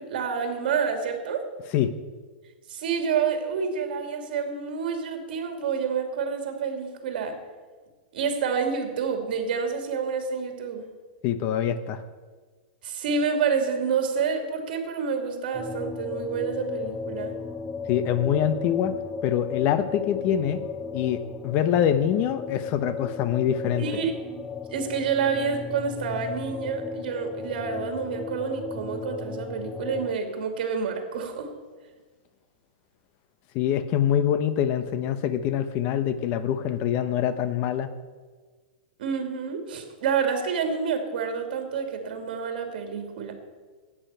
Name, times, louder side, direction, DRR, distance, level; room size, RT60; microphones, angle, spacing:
voice 1, 0.0-1.5 2.7-7.4 8.1-10.9 12.8-17.3 23.8-24.1 24.7-31.5 39.0-43.3, right 6 dB, 65° right, 5 dB, 2.6 m, -28 dB
voice 2, 11.2-12.0 17.9-19.0 19.2-20.6 20.9-24.0 33.5-37.9, left 9 dB, 35° left, 12 dB, 0.8 m, -25 dB
sound 1, 15.5-30.2, left 5 dB, 10° left, 0.4 m, -35 dB
10.0 x 8.8 x 9.0 m, 1.4 s
supercardioid pair, 150°, 5 cm